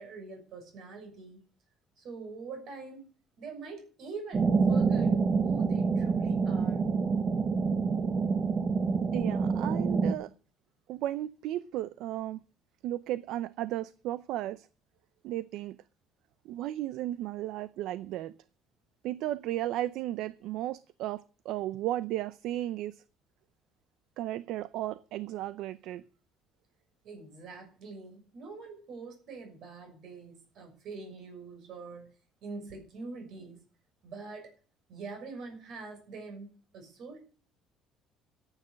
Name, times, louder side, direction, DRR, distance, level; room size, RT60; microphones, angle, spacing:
voice 1, 0.0-1.4 2.0-3.1 3.4-6.8 27.0-32.1 32.4-33.6 34.0-34.5 34.9-37.2, right 4 dB, 50° right, 6.4 m, -44 dB
sound 1, 4.3-10.1, right 5 dB, 25° right, 1.2 m, -27 dB
voice 2, 9.1-10.3 10.9-12.4 12.8-14.7 15.2-15.8 16.4-18.3 19.0-23.0 24.2-26.0, right 14 dB, 65° right, 0.6 m, -34 dB
14.0 x 9.0 x 6.4 m
cardioid pair, 170°, 0 cm